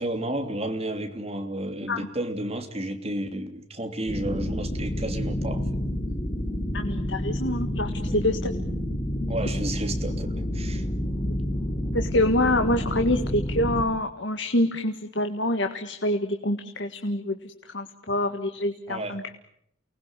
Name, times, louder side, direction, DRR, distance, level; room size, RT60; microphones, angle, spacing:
voice 1, 0.0-5.7 8.1-8.2 9.3-10.9 18.9-19.2, right 1 dB, 30° right, 3.1 m, -32 dB
sound 1, 4.1-13.8, left 1 dB, 25° left, 3.8 m, -29 dB
voice 2, 6.7-8.5 11.2-11.4 11.9-19.2, left 1 dB, 60° left, 1.8 m, -26 dB
29.5 x 20.5 x 9.1 m
head